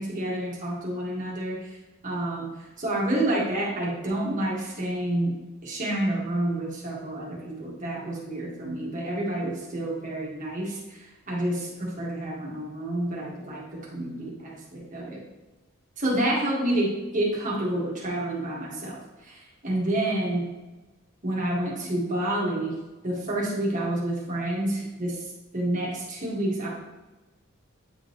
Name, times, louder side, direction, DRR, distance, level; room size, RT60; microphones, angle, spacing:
voice 1, 0.0-1.7 2.0-2.5 2.8-5.4 5.6-15.2 16.0-20.5 21.2-22.7 23.0-25.2 25.5-26.7, right 1 dB, 35° right, -5 dB, 1.7 m, -29 dB
8.9 x 3.9 x 3.1 m, 1.1 s
head